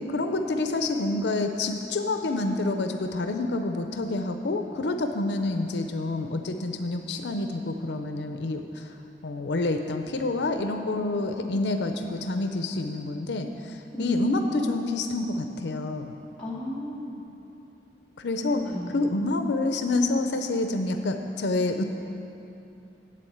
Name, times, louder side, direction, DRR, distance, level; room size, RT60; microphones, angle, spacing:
voice 1, 0.1-8.9 9.2-16.1 18.2-18.6 18.9-21.8, left 2 dB, 75° left, 6 dB, 0.6 m, -28 dB
voice 2, 13.9-14.8 16.4-17.2 18.4-19.1, left 1 dB, 5° left, -8 dB, 2.0 m, -33 dB
8.5 x 7.6 x 7.8 m, 2.8 s
head